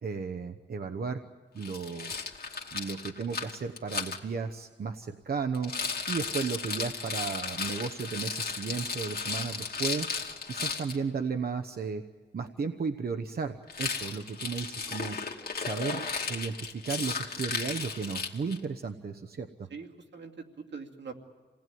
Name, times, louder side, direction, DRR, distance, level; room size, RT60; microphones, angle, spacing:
voice 1, 0.0-1.2 1.5-2.1 2.7-5.7 6.1-10.1 10.5-12.0 12.3-15.2 15.6-16.0 16.3-19.7, right 5 dB, 60° right, 6 dB, 1.0 m, -34 dB
Rattle, 1.6-4.2 5.5-11.0 13.7-18.6, left 5 dB, 55° left, 2.4 m, -35 dB
voice 2, 19.7-21.1, right 5 dB, 85° right, 2 dB, 2.6 m, -43 dB
28.0 x 18.5 x 9.4 m, 1.6 s
wide cardioid pair, 145°, 18 cm